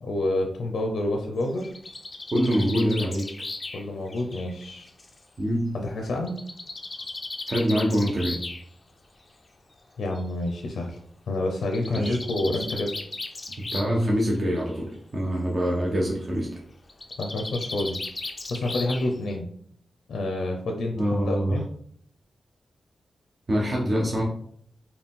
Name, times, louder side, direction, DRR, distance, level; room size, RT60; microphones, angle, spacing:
voice 1, 0.0-1.7 3.7-4.9 5.7-6.4 10.0-11.0 11.3-13.0 17.2-18.0 18.5-19.5 20.1-21.6, left 2 dB, 80° left, 2 dB, 0.5 m, -28 dB
Bird, 1.4-5.2 6.3-8.6 9.7-9.8 10.1-10.2 10.5-10.6 11.6-14.0 14.3-14.8 16.9-19.3, left 2 dB, 25° left, 0.4 m, -36 dB
voice 2, 2.3-3.3 5.4-5.8 7.5-8.4 11.9-12.2 12.4-12.5 13.7-16.6 21.0-21.6 23.5-24.2, equal, 35° right, -2 dB, 0.7 m, -25 dB
4.1 x 2.3 x 3.6 m, 0.62 s
wide cardioid pair, 145°, 0 cm